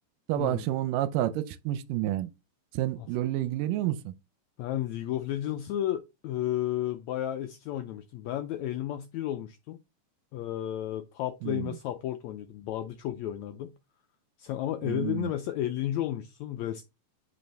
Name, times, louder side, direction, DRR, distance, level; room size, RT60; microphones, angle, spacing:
voice 1, 0.3-2.3 2.7-4.1 11.4-11.7 14.8-15.3, right 13 dB, 80° right, 2.2 m, -29 dB
voice 2, 4.6-9.8 10.3-13.7 14.4-16.8, left 12 dB, 90° left, 1.6 m, -32 dB
7.8 x 5.0 x 3.4 m
omnidirectional pair, 3.9 m